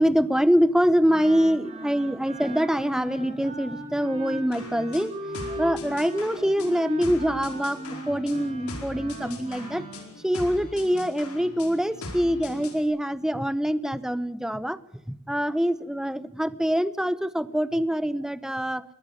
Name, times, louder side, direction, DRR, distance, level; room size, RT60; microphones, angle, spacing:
voice 1, 0.0-5.1 5.5-9.8 10.2-14.8 15.1-18.8, equal, 5° right, 16 dB, 0.7 m, -24 dB
Wind instrument woodwind instrument, 1.0-10.1, right 1 dB, 30° right, 6.1 m, -39 dB
sound 1, 4.5-12.8, left 2 dB, 75° left, 4.6 m, -40 dB
21.5 x 18.5 x 7.0 m, 0.80 s
head